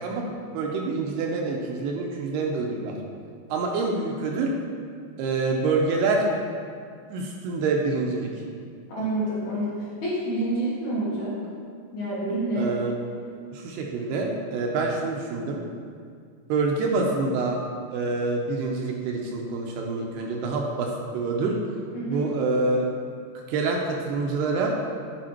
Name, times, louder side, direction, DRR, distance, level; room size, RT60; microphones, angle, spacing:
voice 1, 0.0-3.0 3.5-4.5 5.2-6.3 7.1-8.3 12.6-13.0 13.5-15.6 16.5-17.6 17.9-21.6 22.1-22.9 23.5-24.8, right 3 dB, 80° right, 0 dB, 2.5 m, -26 dB
voice 2, 8.9-11.3 11.9-12.7 21.9-22.2, right 1 dB, 60° left, -9 dB, 2.2 m, -28 dB
8.8 x 5.0 x 4.4 m, 2.2 s
omnidirectional pair, 4.9 m